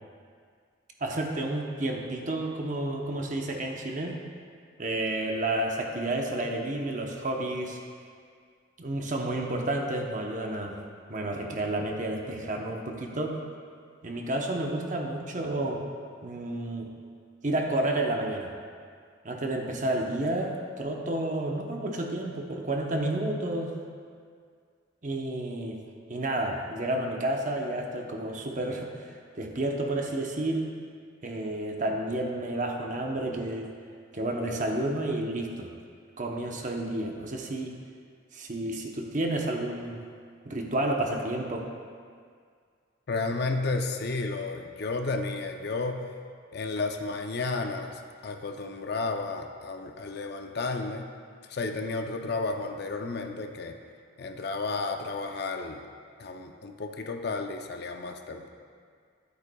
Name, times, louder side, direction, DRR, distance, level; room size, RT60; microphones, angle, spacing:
voice 1, 1.0-4.2 4.8-7.8 8.8-10.8 11.1-13.4 14.0-15.8 16.2-16.9 17.4-18.5 19.2-23.7 25.0-25.8 26.1-29.1 29.3-30.7 31.2-33.7 34.1-35.7 36.2-37.7 38.3-40.0 40.4-41.7, right 1 dB, 40° right, 1 dB, 0.8 m, -30 dB
voice 2, 43.1-46.0 46.5-51.1 51.5-53.8 54.2-55.9 56.2-58.5, left 3 dB, 55° left, 5 dB, 0.5 m, -32 dB
12.5 x 8.1 x 2.3 m, 2.1 s
head